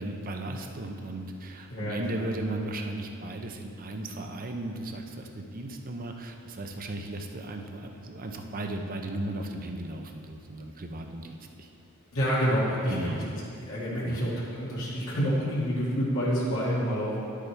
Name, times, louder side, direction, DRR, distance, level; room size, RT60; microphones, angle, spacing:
voice 1, 0.0-11.7 12.9-13.7 14.0-14.2, right 1 dB, 40° right, 4 dB, 0.7 m, -36 dB
voice 2, 1.7-2.3 12.1-13.2 13.6-17.2, equal, 65° left, -8 dB, 2.2 m, -28 dB
11.0 x 8.3 x 3.4 m, 2.5 s
head